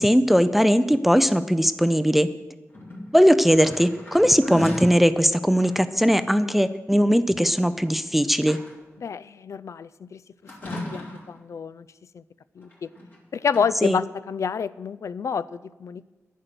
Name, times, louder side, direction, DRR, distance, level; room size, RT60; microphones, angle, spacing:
voice 1, 0.0-2.3 3.1-8.6 13.8-14.0, equal, 5° right, 12 dB, 0.4 m, -19 dB
sound 1, 2.7-5.0 5.5-6.3 7.7-7.9 8.2-9.0 10.4-11.4 12.6-13.2 13.5-13.7, left 1 dB, 35° left, 3.0 m, -37 dB
voice 2, 9.0-10.2 10.6-11.9 12.1-12.2 12.6-12.9 13.3-16.1, left 6 dB, 65° left, 17 dB, 0.4 m, -29 dB
10.5 x 10.0 x 6.6 m, 1.1 s
wide cardioid pair, 135°, 6 cm